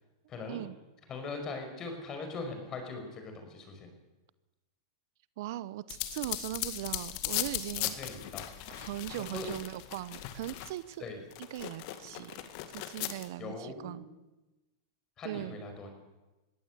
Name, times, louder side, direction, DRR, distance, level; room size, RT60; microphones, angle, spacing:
voice 1, 0.3-0.6 1.1-3.9 7.8-8.5 9.2-9.5 11.0-11.2 13.4-14.1 15.2-15.9, left 3 dB, 25° left, 5 dB, 5.4 m, -41 dB
voice 2, 5.4-8.0 8.7-11.0 11.5-14.1 15.2-15.6, right 15 dB, 60° right, 18 dB, 0.7 m, -39 dB
sound 1, 5.9-10.9 11.3-13.3, left 14 dB, 50° left, 1.9 m, -38 dB
21.0 x 16.0 x 8.2 m, 1.1 s
supercardioid pair, 140°, 2 cm